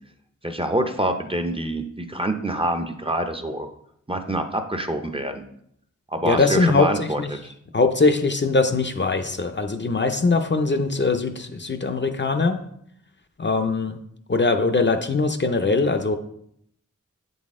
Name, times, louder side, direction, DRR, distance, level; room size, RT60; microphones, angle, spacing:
voice 1, 0.4-3.7 4.1-5.4 6.1-7.4, right 1 dB, 20° right, 6 dB, 0.6 m, -26 dB
voice 2, 6.2-7.3 7.7-12.6 13.4-14.0 14.3-16.2, left 3 dB, 40° left, 7 dB, 0.5 m, -21 dB
8.1 x 4.0 x 3.6 m, 0.71 s
wide cardioid pair, 65°, 30 cm